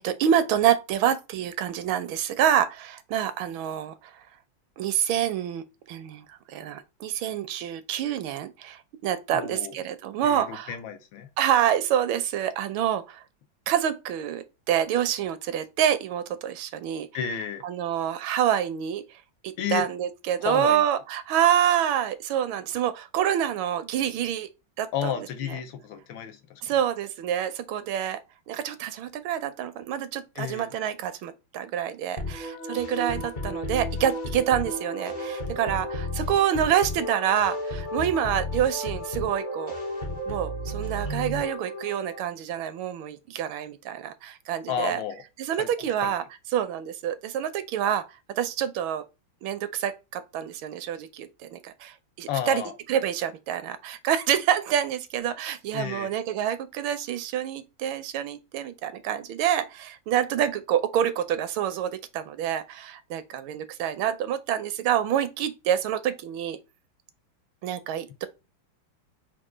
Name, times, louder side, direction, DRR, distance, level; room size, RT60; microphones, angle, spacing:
voice 1, 0.0-4.1 4.8-10.7 11.4-13.2 13.7-17.1 17.6-19.0 19.4-24.5 24.8-25.1 25.5-25.6 26.6-28.2 28.5-39.7 40.3-45.0 45.4-46.2 46.5-48.0 48.3-49.0 49.4-52.6 52.9-66.6 67.6-68.3, right 10 dB, 80° right, 1.4 m, -27 dB
voice 2, 9.3-9.7 10.2-11.3 17.1-17.6 19.6-19.9 20.4-20.8 24.9-26.6 30.4-30.7 44.7-45.2 45.6-46.1 52.3-52.7 55.7-56.1, left 8 dB, 75° left, 1.4 m, -32 dB
sound 1, 32.2-42.3, left 1 dB, 50° left, 0.5 m, -33 dB
4.6 x 2.3 x 4.8 m
omnidirectional pair, 2.2 m